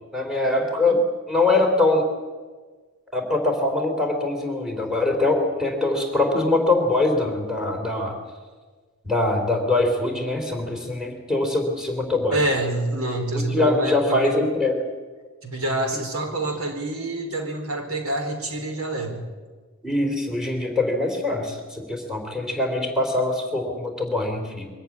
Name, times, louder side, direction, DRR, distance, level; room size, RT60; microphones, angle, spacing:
voice 1, 0.1-2.1 3.1-8.2 9.0-12.4 13.5-14.7 19.8-24.7, left 2 dB, ahead, 2 dB, 3.4 m, -23 dB
voice 2, 12.3-14.5 15.4-19.2, right 1 dB, 75° right, 4 dB, 4.1 m, -26 dB
23.5 x 14.0 x 9.8 m, 1.4 s
head